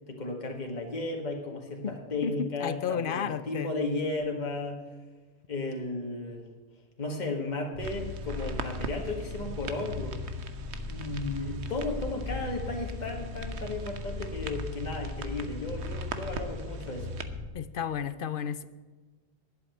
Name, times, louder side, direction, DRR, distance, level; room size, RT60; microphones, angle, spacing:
voice 1, 0.1-4.9 5.5-6.5 7.0-10.2 10.9-17.2, left 2 dB, 40° left, 1 dB, 1.8 m, -34 dB
voice 2, 2.2-3.7 17.5-18.6, left 8 dB, 55° left, 14 dB, 0.8 m, -32 dB
sound 1, 7.7-17.5, left 2 dB, 5° left, 3.0 m, -38 dB
sound 2, 7.8-17.2, right 5 dB, 80° right, 1.2 m, -43 dB
11.0 x 8.3 x 7.6 m, 1.3 s
omnidirectional pair, 1.1 m